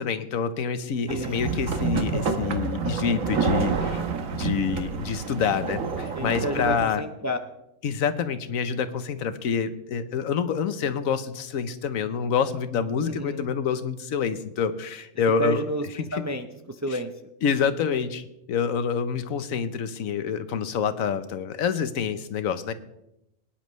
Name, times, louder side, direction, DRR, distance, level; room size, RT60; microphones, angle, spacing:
voice 1, 0.0-4.0 4.3-7.0 7.8-15.6 16.0-16.1 17.4-22.7, left 6 dB, 90° left, 11 dB, 1.3 m, -27 dB
voice 2, 1.1-1.4 6.1-7.4 13.0-13.5 15.4-17.1, right 1 dB, 25° right, 6 dB, 0.4 m, -30 dB
sound 1, 1.1-6.9, right 5 dB, 80° right, 1.5 m, -28 dB
21.5 x 10.0 x 3.2 m, 0.86 s
omnidirectional pair, 1.4 m